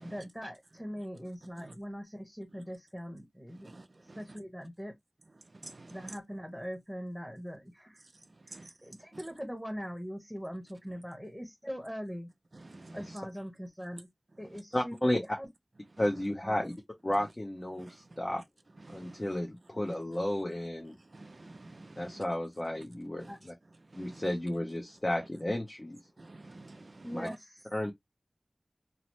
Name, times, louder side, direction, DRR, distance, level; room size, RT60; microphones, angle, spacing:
voice 1, 0.0-4.9 5.9-8.0 8.4-12.3 12.9-14.1 14.4-15.5 16.4-16.7 23.3-23.4 27.0-27.6, equal, ahead, 1.0 m, -42 dB
voice 2, 14.7-15.2 16.0-16.7 17.0-18.4 18.9-20.9 22.0-23.3 24.0-26.0 27.1-27.3 27.7-27.9, left 1 dB, 35° left, 0.7 m, -32 dB
voice 3, 21.2-22.0 26.2-27.0, right 2 dB, 65° right, 0.4 m, -49 dB
2.9 x 2.0 x 2.9 m
wide cardioid pair, 45°, 0 cm